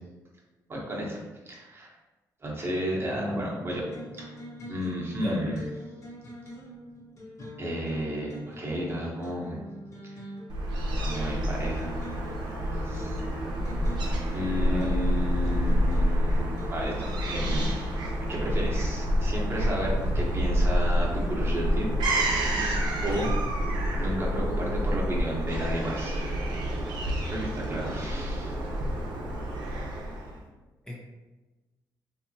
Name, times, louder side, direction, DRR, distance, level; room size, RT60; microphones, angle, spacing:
voice 1, 0.7-1.2 1.5-1.9 2.4-3.8 4.2-4.3 4.7-5.7 7.6-9.6 11.0-11.9 12.7-13.2 14.3-17.9 18.3-22.0 23.0-23.3 24.0-26.3 26.8-28.5, equal, 35° right, -3 dB, 1.0 m, -33 dB
voice 2, 3.1-3.6 5.2-5.5 14.7-15.0 30.9-31.0, left 1 dB, 10° left, -3 dB, 0.5 m, -34 dB
sound 1, 3.7-18.5, left 1 dB, 45° left, 1.2 m, -44 dB
Fowl / Gull seagull, 10.5-30.4, equal, 85° right, 0.7 m, -28 dB
3.5 x 2.7 x 2.7 m, 1.2 s
cardioid pair, 90°, 7 cm